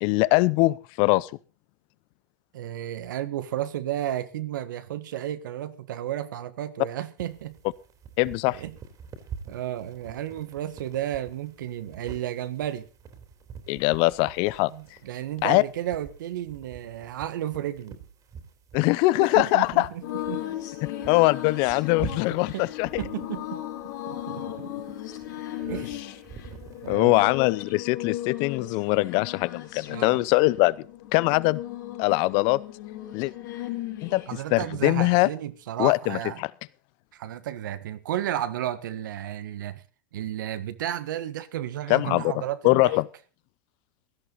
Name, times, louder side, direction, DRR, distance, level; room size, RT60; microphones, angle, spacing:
voice 1, 0.0-1.3 8.2-8.6 13.7-14.7 15.4-15.6 18.7-19.9 20.8-23.0 26.9-30.8 31.1-31.6 32.0-32.6 33.1-33.3 34.0-34.2 34.5-35.3 35.8-36.2 41.9-42.3 42.6-43.0, left 22 dB, 55° left, 0.7 m, -22 dB
voice 2, 2.5-7.6 8.5-8.7 9.4-12.9 14.7-18.0 19.2-20.5 22.0-22.7 23.0-23.6 24.1-24.9 25.5-26.0 26.8-27.3 29.9-30.2 34.3-36.4 37.1-39.8 40.1-43.0, right 12 dB, 85° right, 1.5 m, -33 dB
sound 1, 7.2-27.0, right 7 dB, 35° right, 3.3 m, -46 dB
sound 2, 20.0-34.4, left 13 dB, 75° left, 4.4 m, -36 dB
16.5 x 12.5 x 4.0 m
supercardioid pair, 120°, 10 cm